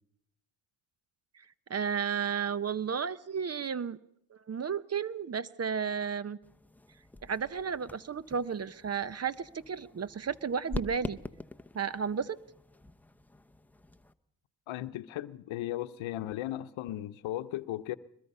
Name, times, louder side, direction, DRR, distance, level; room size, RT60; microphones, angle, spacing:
voice 1, 1.7-4.0 4.5-6.4 7.2-11.2 11.7-12.4, right 6 dB, 35° right, 0.8 m, -33 dB
sound 1, 6.4-14.1, left 2 dB, 5° left, 0.8 m, -45 dB
voice 2, 14.7-18.0, left 14 dB, 80° left, 0.9 m, -36 dB
22.0 x 21.5 x 5.5 m
cardioid pair, 75°, 47 cm